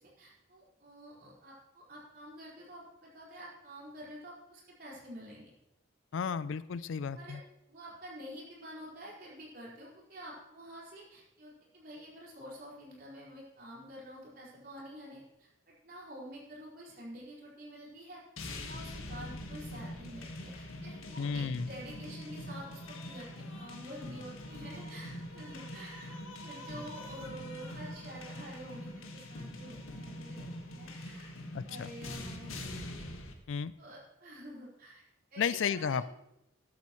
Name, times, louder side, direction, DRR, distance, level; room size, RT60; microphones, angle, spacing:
voice 1, 0.0-5.5 7.1-7.4 7.7-15.5 15.8-18.2 18.6-31.3 31.7-32.6 33.0-33.1 33.8-35.0 35.3-36.1, equal, 50° right, -5 dB, 4.9 m, -48 dB
voice 2, 6.1-7.4 21.2-21.7 31.5-31.9 33.5-33.7 35.4-36.1, left 6 dB, 65° left, 16 dB, 0.4 m, -33 dB
sound 1, 18.4-33.3, left 1 dB, 90° left, 1.6 m, -43 dB
14.0 x 11.5 x 3.1 m, 0.84 s
head